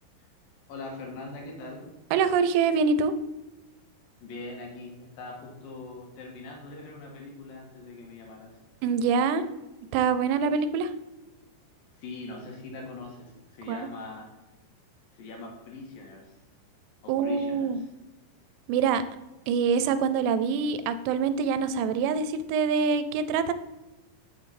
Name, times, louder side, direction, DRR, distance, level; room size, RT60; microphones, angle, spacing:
voice 1, 0.7-1.9 4.2-8.5 12.0-14.3 15.1-16.3 17.0-17.8, left 2 dB, 65° left, 0 dB, 3.0 m, -42 dB
voice 2, 2.1-3.1 8.8-9.5 9.9-10.9 13.7-13.8 17.1-17.8 18.7-19.0 19.5-23.5, right 6 dB, 90° right, 12 dB, 2.8 m, -25 dB
7.7 x 7.0 x 4.1 m, 1.0 s
omnidirectional pair, 4.8 m